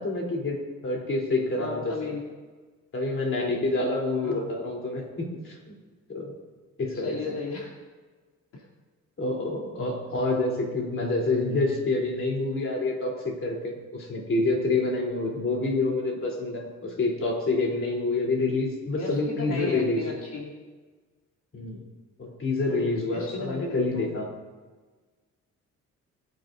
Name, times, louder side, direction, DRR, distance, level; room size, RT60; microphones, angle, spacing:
voice 1, 0.0-1.8 2.9-5.7 6.1-6.3 6.8-7.3 9.2-20.1 21.5-21.8 22.2-24.3, left 2 dB, 45° left, -1 dB, 3.6 m, -27 dB
voice 2, 1.6-2.3 4.2-4.5 6.9-7.7 8.5-8.6 19.0-20.6 22.7-24.1, left 3 dB, 80° left, -5 dB, 3.1 m, -35 dB
23.0 x 10.0 x 2.7 m, 1.4 s
cardioid pair, 90°, 30 cm